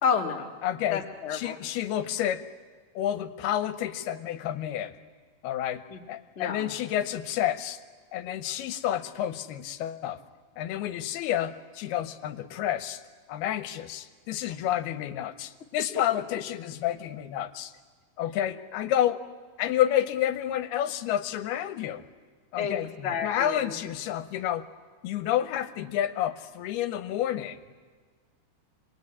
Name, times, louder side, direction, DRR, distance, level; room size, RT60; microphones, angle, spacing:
voice 1, 0.0-0.5 0.9-1.5 5.9-6.0 6.3-6.7 22.6-23.7, left 6 dB, 30° left, 1 dB, 1.2 m, -30 dB
voice 2, 0.6-1.0 1.3-2.4 3.0-5.0 5.4-5.8 6.1-7.8 8.1-10.2 10.6-13.0 13.3-17.7 18.2-19.2 19.6-22.1 22.5-24.6 25.0-27.6, left 11 dB, 85° left, 11 dB, 2.9 m, -29 dB
27.5 x 21.0 x 9.8 m, 1.5 s
omnidirectional pair, 4.5 m